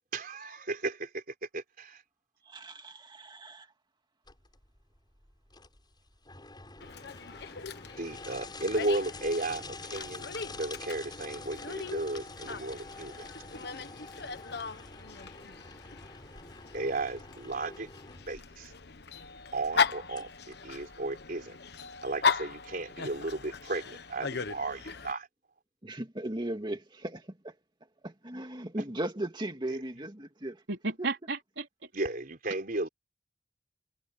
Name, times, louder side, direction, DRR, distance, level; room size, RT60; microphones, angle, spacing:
voice 1, 0.1-1.2 1.5-2.0 8.0-13.3 16.7-17.9 18.3-18.7 19.5-21.6 22.0-25.3 31.9-32.9, right 2 dB, 55° right, 3.7 m, -34 dB
voice 2, 2.5-3.7 25.8-27.5 28.0-30.6 31.0-31.1, right 1 dB, 25° right, 2.3 m, -37 dB
Paper shredder, 4.3-21.3, left 3 dB, 25° left, 7.7 m, -47 dB
Dog, 6.8-25.1, left 5 dB, 65° left, 1.3 m, -37 dB
voice 3, 30.7-31.9, right 3 dB, 90° right, 3.8 m, -34 dB
head